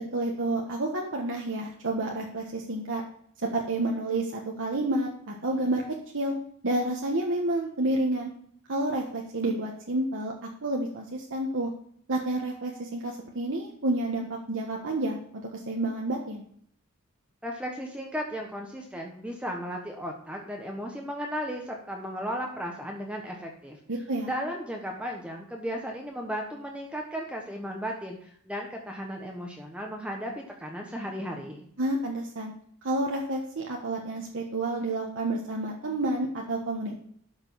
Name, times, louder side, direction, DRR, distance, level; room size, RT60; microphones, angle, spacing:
voice 1, 0.1-3.0 3.4-5.8 6.1-6.3 6.6-8.3 8.7-10.3 10.6-11.7 12.1-16.4 23.9-24.3 31.8-32.5 32.8-37.0, right 2 dB, 60° right, 0 dB, 1.3 m, -29 dB
voice 2, 17.4-23.8 24.3-30.3 30.6-31.7, equal, 5° right, 0 dB, 1.1 m, -35 dB
12.0 x 5.3 x 5.6 m, 0.65 s
head